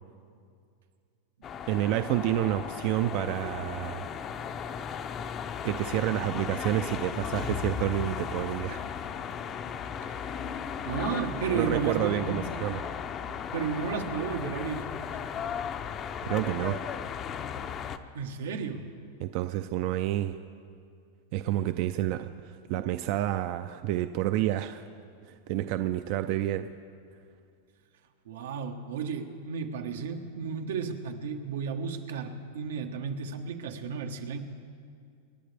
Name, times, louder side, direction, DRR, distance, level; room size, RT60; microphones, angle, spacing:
sound 1, 1.4-18.0, left 7 dB, 30° left, 0.6 m, -36 dB
voice 1, 1.7-4.1 5.6-8.9 11.5-12.9 16.2-16.8 19.2-20.4 21.3-24.8 25.3-26.7, right 13 dB, 50° right, 9 dB, 0.4 m, -29 dB
voice 2, 10.8-12.4 13.5-14.9 18.1-18.9 28.2-34.4, right 6 dB, 90° right, 4 dB, 1.3 m, -33 dB
28.0 x 11.0 x 3.4 m, 2.3 s
supercardioid pair, 145°, 0 cm